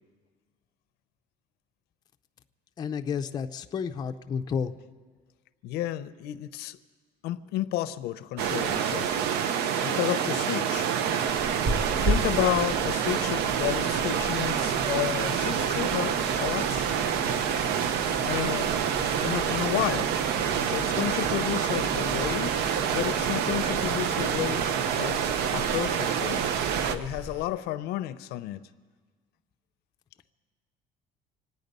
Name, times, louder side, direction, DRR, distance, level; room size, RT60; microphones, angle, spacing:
voice 1, 2.8-4.7, left 6 dB, 25° left, 0.4 m, -31 dB
voice 2, 5.6-6.8 7.2-9.2 9.8-10.9 12.0-16.9 18.2-18.7 19.2-20.1 20.7-22.6 22.9-25.2 25.5-26.5 26.9-28.7, left 14 dB, 80° left, 0.6 m, -31 dB
sound 1, 8.4-27.0, right 8 dB, 85° right, 0.7 m, -27 dB
sound 2, 11.2-27.5, right 2 dB, 45° right, 5.6 m, -38 dB
sound 3, 13.4-24.3, left 1 dB, 60° right, 3.3 m, -44 dB
26.0 x 9.4 x 5.3 m
cardioid pair, 170°, 16 cm